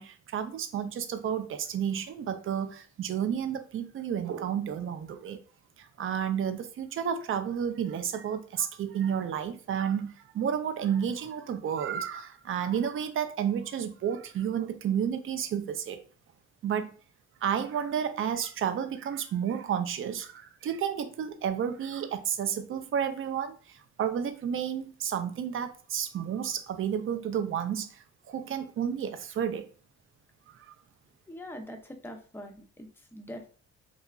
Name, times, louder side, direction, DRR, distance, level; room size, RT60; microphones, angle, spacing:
voice 1, 0.0-5.4 5.8-16.0 16.6-16.9 17.4-29.7 30.5-30.7, right 8 dB, 45° right, 0.4 m, -31 dB
voice 2, 31.3-33.5, equal, 5° left, 0.5 m, -43 dB
2.9 x 2.3 x 2.3 m
cardioid pair, 90°, 30 cm